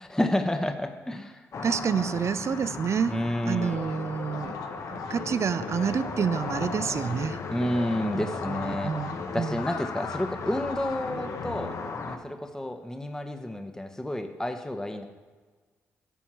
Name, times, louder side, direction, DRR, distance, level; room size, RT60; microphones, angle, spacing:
voice 1, 0.0-1.5 3.1-3.8 7.5-8.9 9.3-11.8 12.0-15.1, left 1 dB, 10° left, 6 dB, 1.1 m, -30 dB
sound 1, 1.5-12.2, left 4 dB, 55° left, 1.2 m, -37 dB
voice 2, 1.6-3.2 3.5-4.6 4.9-7.4 8.1-9.6, right 7 dB, 50° right, 14 dB, 0.5 m, -28 dB
sound 2, 3.6-12.8, left 5 dB, 85° left, 1.0 m, -39 dB
11.0 x 4.3 x 7.4 m, 1.4 s
supercardioid pair, 55°, 6 cm